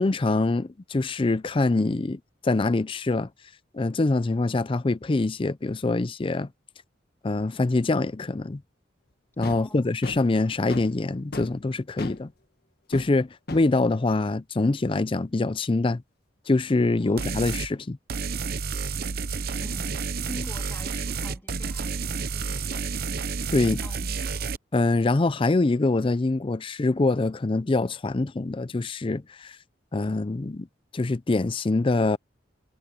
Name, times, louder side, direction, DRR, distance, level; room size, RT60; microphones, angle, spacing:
voice 1, 0.0-3.3 3.7-6.5 7.2-8.6 9.4-12.3 12.9-16.0 16.5-18.0 23.5-23.8 24.7-29.6 29.9-30.7 30.9-32.2, left 2 dB, 30° left, 0.5 m, -24 dB
sound 1, 9.4-9.7 10.0-11.0 11.3-11.6 12.0-12.2 12.9-13.2 13.5-13.7 16.6-17.4, left 2 dB, 55° left, 1.5 m, -37 dB
voice 2, 9.5-9.9 17.0-17.4 19.6-22.9 23.8-24.2, left 1 dB, 15° left, 3.4 m, -44 dB
sound 2, 17.2-17.7 18.1-24.6, right 4 dB, 55° right, 0.8 m, -30 dB
head